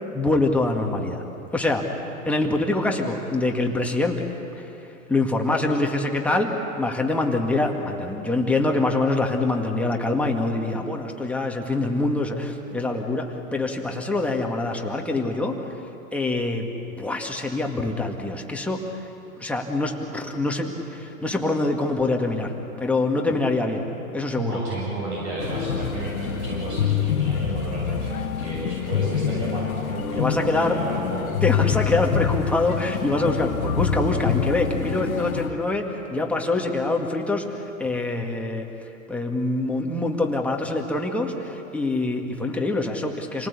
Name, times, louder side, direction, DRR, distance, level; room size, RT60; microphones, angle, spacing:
voice 1, 0.1-1.2 1.5-1.8 2.3-4.2 5.1-6.5 6.8-15.6 16.1-16.7 17.0-18.8 19.4-22.5 22.8-23.9 24.1-24.6 30.2-30.8 31.4-37.4 37.8-38.7 39.1-43.5, left 2 dB, 5° left, 1 dB, 1.9 m, -25 dB
voice 2, 24.4-31.4, right 2 dB, 55° right, -4 dB, 7.9 m, -32 dB
sound 1, 25.4-35.5, left 7 dB, 90° left, 1.5 m, -26 dB
28.0 x 18.5 x 8.4 m, 2.9 s
hypercardioid pair, 130°, 41 cm